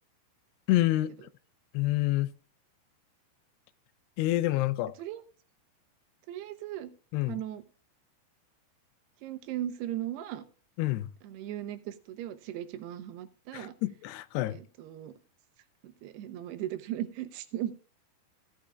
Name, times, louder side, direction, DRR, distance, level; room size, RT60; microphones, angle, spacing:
voice 1, 0.7-1.1 1.7-2.3 4.2-4.9 7.1-7.4 10.8-11.1 13.5-14.6, left 16 dB, 85° left, 2.8 m, -27 dB
voice 2, 6.3-6.9 7.3-7.6 9.2-10.4 11.2-13.7 14.5-15.1 15.8-17.7, right 12 dB, 80° right, 3.0 m, -37 dB
16.5 x 11.5 x 2.3 m
omnidirectional pair, 4.8 m